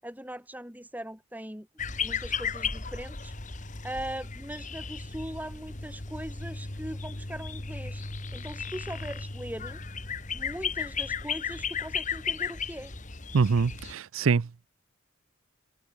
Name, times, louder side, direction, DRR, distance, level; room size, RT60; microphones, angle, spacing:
voice 1, 0.0-1.7 2.0-3.3 3.8-8.0 8.3-9.8 10.3-12.9, right 1 dB, 10° right, 6.2 m, -40 dB
sound 1, 1.8-13.9, left 5 dB, 35° left, 1.8 m, -35 dB
voice 2, 13.3-14.7, right 5 dB, 75° right, 0.5 m, -25 dB
head